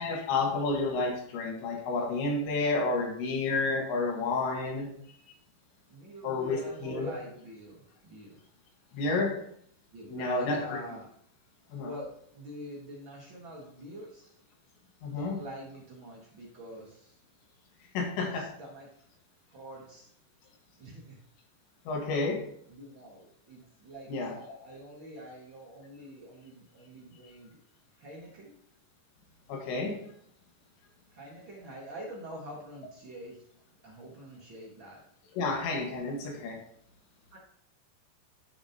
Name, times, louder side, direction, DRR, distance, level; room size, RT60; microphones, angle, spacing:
voice 1, 0.0-4.9 6.2-7.1 8.9-9.4 10.1-10.8 11.7-11.9 15.0-15.4 17.9-18.5 21.9-22.5 24.1-24.4 29.5-30.1 35.3-36.6, left 3 dB, 90° left, 0 dB, 4.0 m, -30 dB
voice 2, 5.9-8.4 9.9-11.1 11.8-14.3 15.0-17.2 18.2-18.9 19.5-20.1 20.8-21.2 22.7-27.6 27.9-28.5 31.1-33.4 33.8-35.0 37.3-37.4, equal, 70° right, -4 dB, 1.1 m, -45 dB
11.5 x 6.8 x 2.9 m, 0.65 s
omnidirectional pair, 5.0 m